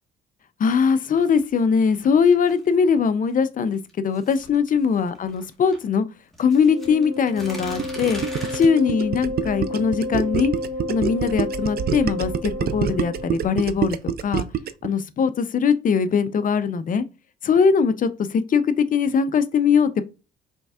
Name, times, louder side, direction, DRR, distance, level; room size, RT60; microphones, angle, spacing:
voice 1, 0.6-6.1 6.4-8.2 8.5-10.5 10.9-14.0 14.2-14.5 14.8-17.0 17.4-20.0, left 6 dB, 45° left, 0.5 m, -21 dB
sound 1, 1.2-2.8 3.7-5.8 6.3-8.7, equal, ahead, 1.8 m, -40 dB
Wind instrument woodwind instrument, 6.5-13.5, left 2 dB, 25° left, 1.2 m, -32 dB
Gurgling, 7.8-14.9, right 9 dB, 50° right, 0.4 m, -26 dB
5.3 x 3.2 x 2.4 m
cardioid pair, 90°, 20 cm